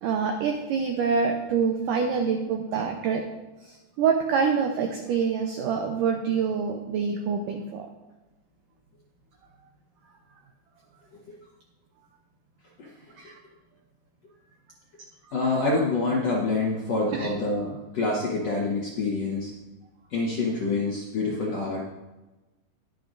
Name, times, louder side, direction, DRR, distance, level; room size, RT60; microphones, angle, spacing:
voice 1, 0.0-3.2 3.6-7.9 13.2-13.4 17.1-17.3, right 6 dB, 85° right, 3 dB, 1.8 m, -26 dB
voice 2, 15.3-19.5 20.1-21.8, left 3 dB, 70° left, -4 dB, 1.6 m, -26 dB
20.5 x 6.9 x 2.6 m, 1.1 s
omnidirectional pair, 4.8 m